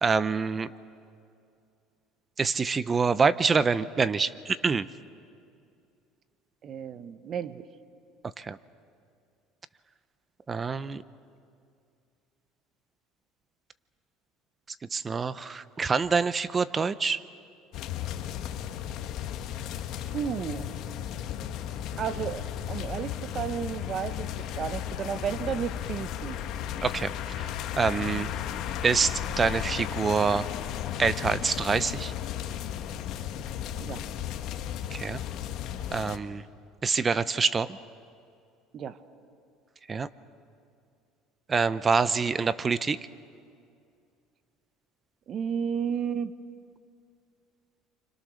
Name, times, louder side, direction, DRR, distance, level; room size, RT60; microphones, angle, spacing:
voice 1, 0.0-0.7 2.4-4.9 8.4-8.6 10.5-11.0 14.9-17.2 26.8-27.1 27.4-27.5 27.8-28.3 28.8-30.5 31.0-32.1 34.9-35.2 35.9-36.4 36.8-37.8 39.9-40.1 41.5-43.0, right 5 dB, 25° right, 15 dB, 0.8 m, -26 dB
voice 2, 6.6-7.6 20.0-20.7 22.0-24.3 24.6-26.4 33.8-34.0 38.7-39.0 45.3-46.3, right 7 dB, 40° right, 12 dB, 1.2 m, -32 dB
sound 1, 17.7-36.2, left 10 dB, 60° left, 1.6 m, -35 dB
29.5 x 25.5 x 6.5 m, 2.4 s
supercardioid pair, 120°, 0 cm